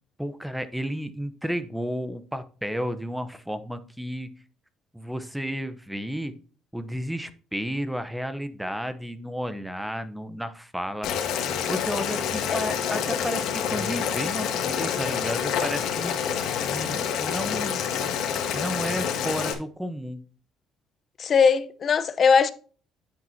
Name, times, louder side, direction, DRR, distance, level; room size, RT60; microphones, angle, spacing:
voice 1, 0.2-4.3 4.9-6.4 6.7-11.1 11.7-16.2 16.6-17.8 18.5-20.2, equal, 5° right, 0.7 m, -32 dB
Boiling, 11.0-19.5, left 8 dB, 75° left, 1.6 m, -27 dB
voice 2, 21.2-22.5, left 6 dB, 40° left, 0.7 m, -20 dB
9.0 x 7.8 x 2.7 m
cardioid pair, 130°, 0 cm